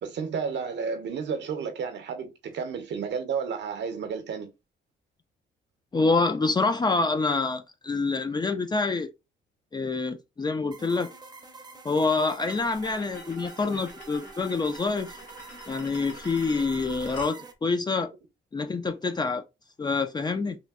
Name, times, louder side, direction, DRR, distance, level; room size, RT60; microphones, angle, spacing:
voice 1, 0.0-4.5, right 6 dB, 60° right, 0.7 m, -32 dB
voice 2, 5.9-9.1 9.7-11.1 11.8-15.2 15.7-18.1 18.5-19.4 19.8-20.6, left 3 dB, 20° left, 0.4 m, -26 dB
sound 1, 10.7-17.5, right 4 dB, 20° right, 0.6 m, -46 dB
sound 2, 12.4-17.4, left 1 dB, 45° left, 1.0 m, -46 dB
3.1 x 2.5 x 2.3 m
cardioid pair, 90°, 20 cm